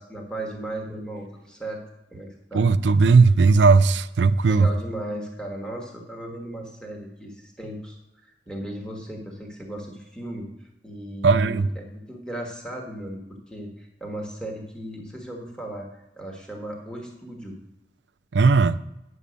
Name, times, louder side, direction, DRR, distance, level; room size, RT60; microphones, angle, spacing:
voice 1, 0.0-1.8 2.1-2.6 4.4-8.0 8.2-10.5 10.8-13.2 13.5-17.6, right 1 dB, 5° left, 0 dB, 1.4 m, -36 dB
voice 2, 2.5-4.7 11.2-11.7 18.3-18.8, right 4 dB, 85° right, 14 dB, 0.5 m, -17 dB
10.0 x 7.0 x 5.1 m, 0.90 s
head